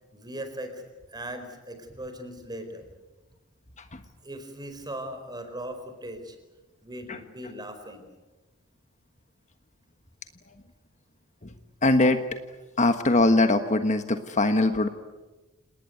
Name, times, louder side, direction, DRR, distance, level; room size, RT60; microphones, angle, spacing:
voice 1, 0.1-0.8 1.1-2.9 4.2-6.4 6.8-8.0, right 1 dB, 20° right, 8 dB, 4.5 m, -38 dB
voice 2, 11.8-12.2 12.8-14.9, left 2 dB, 35° left, 8 dB, 1.4 m, -22 dB
29.0 x 19.5 x 9.4 m, 1.2 s
head